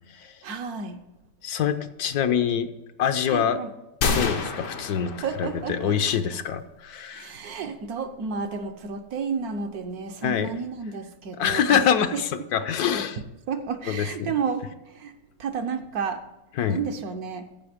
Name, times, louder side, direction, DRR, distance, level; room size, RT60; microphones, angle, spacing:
voice 1, 0.4-1.0 3.3-3.7 5.2-6.0 7.1-11.9 12.1-12.2 13.5-16.2 16.7-17.5, right 5 dB, 65° right, 7 dB, 1.2 m, -31 dB
voice 2, 1.4-2.7 3.0-3.6 4.1-5.1 5.4-7.3 10.2-10.5 11.4-13.2 13.9-14.3 16.6-16.8, left 8 dB, 70° left, 9 dB, 1.1 m, -25 dB
sound 1, 4.0-5.9, left 4 dB, 85° left, 1.7 m, -28 dB
14.5 x 5.1 x 5.0 m, 0.99 s
omnidirectional pair, 1.8 m